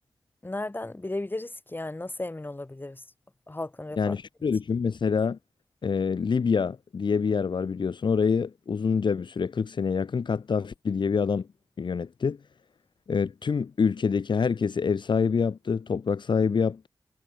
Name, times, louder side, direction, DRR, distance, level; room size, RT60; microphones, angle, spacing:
voice 1, 0.4-3.0 3.5-4.2, left 2 dB, 25° left, 7.0 m, -35 dB
voice 2, 4.0-5.4 5.8-11.5 11.8-12.4 13.1-16.9, left 5 dB, 70° left, 1.8 m, -26 dB
wide cardioid pair, 70°, 8 cm